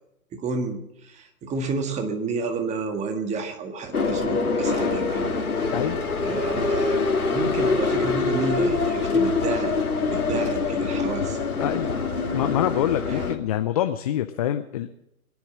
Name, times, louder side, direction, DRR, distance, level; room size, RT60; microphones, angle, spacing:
voice 1, 0.3-0.8 1.0-5.3 6.2-9.7 10.1-11.4 13.1-13.2, right 4 dB, 15° right, 5 dB, 1.8 m, -30 dB
sound 1, 3.9-13.3, left 4 dB, 85° left, 2.3 m, -25 dB
voice 2, 11.6-12.0 12.3-14.9, left 11 dB, 25° left, 9 dB, 0.5 m, -25 dB
21.0 x 10.5 x 6.4 m, 0.84 s
hypercardioid pair, 130°, 43 cm